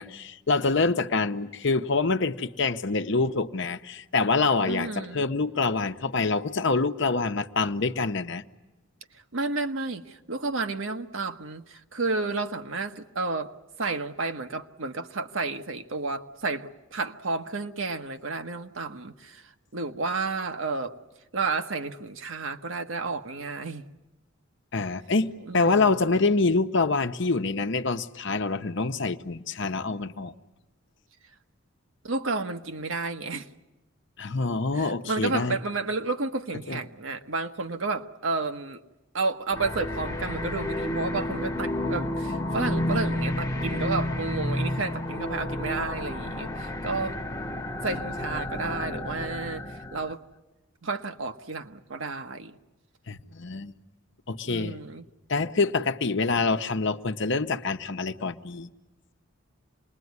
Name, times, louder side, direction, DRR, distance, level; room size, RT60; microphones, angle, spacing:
voice 1, 0.0-8.4 24.7-30.3 34.2-35.6 36.7-36.8 53.1-53.8 54.3-54.8 55.3-58.7, left 3 dB, 60° left, 0.9 m, -26 dB
voice 2, 4.6-5.3 9.3-13.5 13.8-21.0 21.3-23.8 25.5-25.9 32.0-33.5 34.7-38.8 39.1-47.2 47.8-50.2 50.8-52.6 54.4-55.0, right 3 dB, 75° right, 1.2 m, -31 dB
sound 1, 39.5-50.1, left 1 dB, 15° left, 0.9 m, -31 dB
27.5 x 20.5 x 9.5 m
head